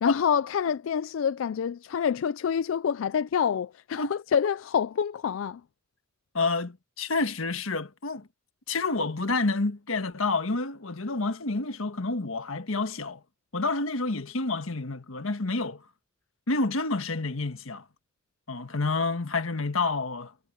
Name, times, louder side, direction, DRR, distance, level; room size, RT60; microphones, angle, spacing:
voice 1, 0.0-5.6, left 7 dB, 70° left, 0.4 m, -27 dB
voice 2, 6.3-8.3 8.7-13.2 13.5-15.8 16.5-17.8 18.5-20.3, left 3 dB, 85° left, 1.5 m, -29 dB
head